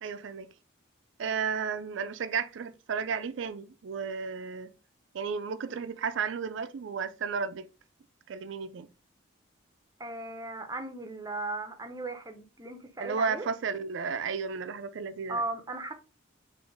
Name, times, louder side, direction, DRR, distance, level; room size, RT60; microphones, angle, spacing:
voice 1, 0.0-0.5 1.2-4.7 5.1-7.7 8.3-8.9 13.0-15.4, right 6 dB, 65° right, 0.4 m, -33 dB
voice 2, 10.0-13.5 15.3-15.9, right 2 dB, 20° right, 0.6 m, -37 dB
4.2 x 2.5 x 3.2 m
head